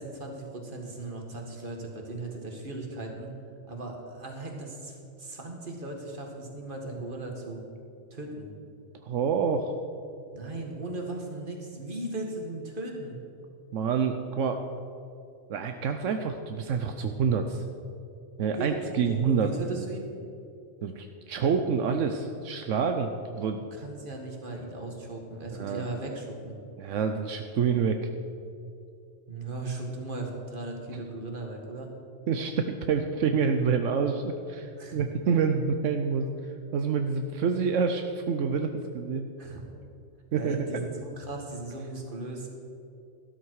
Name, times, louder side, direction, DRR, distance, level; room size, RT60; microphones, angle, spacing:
voice 1, 0.0-3.3 3.7-7.6 8.1-8.5 10.3-13.2 18.5-18.8 19.1-20.0 23.7-26.6 29.3-31.9 34.8-35.0 39.4-39.6 40.4-42.5, right 2 dB, 45° right, 1 dB, 2.0 m, -37 dB
voice 2, 9.0-9.7 13.7-14.6 15.5-17.6 18.4-19.5 19.8-19.9 20.8-23.6 25.5-25.9 26.8-28.1 32.3-36.3 36.7-39.3 40.3-40.8, right 6 dB, 80° right, 6 dB, 1.1 m, -27 dB
13.0 x 12.5 x 4.8 m, 2.5 s
omnidirectional pair, 1.3 m